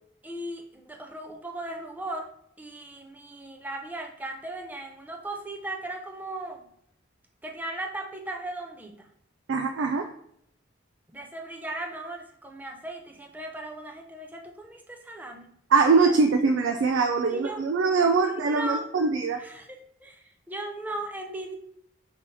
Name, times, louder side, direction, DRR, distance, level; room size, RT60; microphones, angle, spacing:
voice 1, 0.2-2.3 2.6-6.7 7.4-9.1 11.1-15.5 16.1-16.2 17.3-17.6 18.4-18.9 19.4-21.6, right 2 dB, 10° right, 3 dB, 0.5 m, -37 dB
voice 2, 9.5-10.1 15.7-19.4, right 4 dB, 80° right, 3 dB, 0.4 m, -22 dB
5.3 x 2.8 x 3.2 m, 0.71 s
head